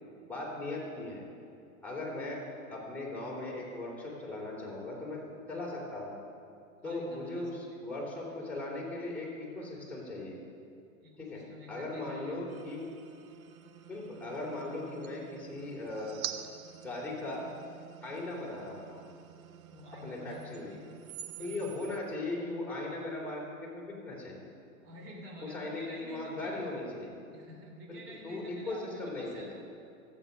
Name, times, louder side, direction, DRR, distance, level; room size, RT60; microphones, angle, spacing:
voice 1, 0.2-1.3 1.8-2.4 2.7-5.2 5.5-6.2 6.8-10.4 11.2-11.4 11.7-12.9 13.9-16.2 16.8-17.5 18.0-19.1 19.9-20.7 21.4-24.5 25.4-27.1 27.9-29.5, left 2 dB, 5° left, -6 dB, 3.5 m, -38 dB
voice 2, 6.8-8.4 11.0-12.6 19.7-20.8 21.4-22.0 24.8-26.6 27.3-29.5, equal, 35° right, -1 dB, 3.3 m, -50 dB
sound 1, 12.5-22.0, right 10 dB, 75° right, 0.9 m, -47 dB
14.0 x 8.1 x 5.4 m, 2.5 s
hypercardioid pair, 120°, 42 cm